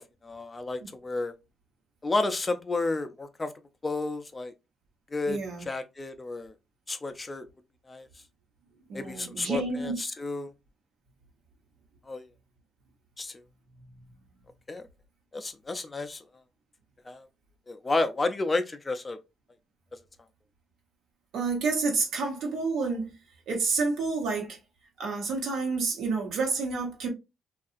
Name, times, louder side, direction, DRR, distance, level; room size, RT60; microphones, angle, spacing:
voice 1, 0.0-1.3 2.0-3.5 3.8-4.5 5.1-5.4 5.7-6.5 6.9-7.4 7.9-8.1 8.9-10.5 12.1-12.3 13.2-13.4 14.7-14.8 15.3-16.2 17.1-17.2 17.7-19.2, left 2 dB, 25° left, 0.4 m, -31 dB
voice 2, 5.3-5.6 8.9-10.0 21.3-23.1 23.5-24.6 25.0-27.1, right 4 dB, 75° right, 1.0 m, -29 dB
2.8 x 2.4 x 2.4 m
cardioid pair, 90°, 0 cm